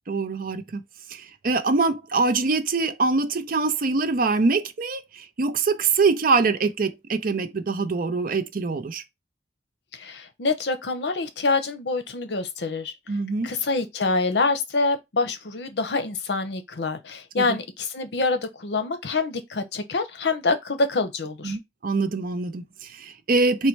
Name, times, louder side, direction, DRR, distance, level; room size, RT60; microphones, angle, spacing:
voice 1, 0.1-0.8 1.1-9.0 13.1-13.5 17.4-17.6 21.4-23.7, right 4 dB, 55° right, 0.5 m, -24 dB
voice 2, 9.9-12.9 13.4-21.6, left 3 dB, 70° left, 0.7 m, -26 dB
4.1 x 2.2 x 4.5 m
head